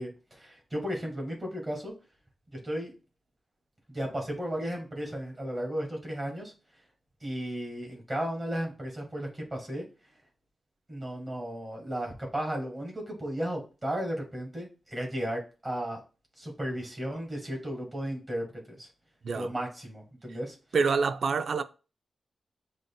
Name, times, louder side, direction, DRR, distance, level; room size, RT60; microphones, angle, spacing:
voice 1, 0.0-1.9 2.5-2.9 3.9-6.5 7.2-9.8 10.9-16.0 16.4-18.9 19.3-20.6, equal, 20° right, 1.6 m, -34 dB
voice 2, 20.7-21.6, right 5 dB, 65° right, 0.4 m, -26 dB
7.6 x 2.6 x 2.2 m
wide cardioid pair, 160°, 0 cm